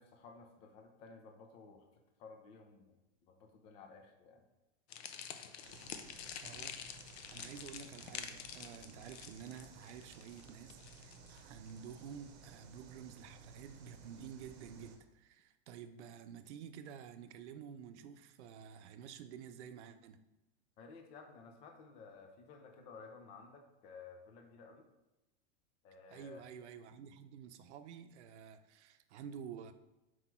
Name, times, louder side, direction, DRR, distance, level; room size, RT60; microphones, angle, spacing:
voice 1, 0.0-1.9 2.2-3.0 3.2-4.4 20.8-24.9 25.8-26.4, left 4 dB, 20° left, 0.4 m, -55 dB
sound 1, 4.9-12.1, left 8 dB, 65° left, 0.7 m, -48 dB
sound 2, 5.6-15.0, right 4 dB, 40° right, 1.0 m, -57 dB
voice 2, 6.4-20.2 26.1-29.7, right 8 dB, 90° right, 0.7 m, -51 dB
6.0 x 4.7 x 4.4 m
supercardioid pair, 175°, 33 cm